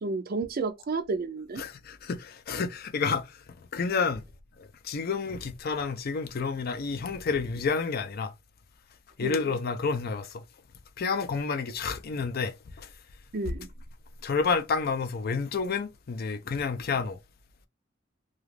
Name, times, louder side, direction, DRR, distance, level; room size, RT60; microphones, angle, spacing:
voice 1, 0.0-1.6 9.2-9.4 13.3-13.7, right 3 dB, 50° right, 0.4 m, -31 dB
voice 2, 1.6-3.4 3.7-4.2 4.6-8.3 9.2-10.4 11.0-12.9 14.2-17.2, left 5 dB, 50° left, 0.4 m, -30 dB
2.4 x 2.3 x 3.2 m
head